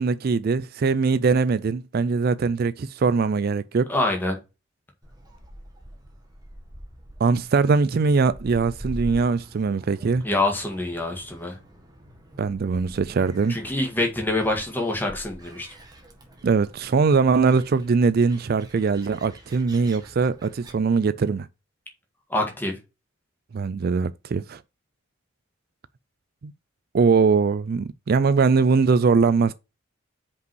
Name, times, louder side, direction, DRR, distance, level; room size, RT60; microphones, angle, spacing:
voice 1, 0.0-3.9 7.2-10.2 12.4-13.6 16.4-21.5 23.5-24.6 26.4-26.5 26.9-29.5, right 4 dB, 45° right, 0.4 m, -21 dB
voice 2, 3.9-4.4 10.2-11.6 13.5-15.7 22.3-22.8, left 2 dB, 10° left, 1.8 m, -25 dB
Gull seagull, 5.0-20.7, equal, 20° right, 1.8 m, -44 dB
5.4 x 5.2 x 6.2 m
head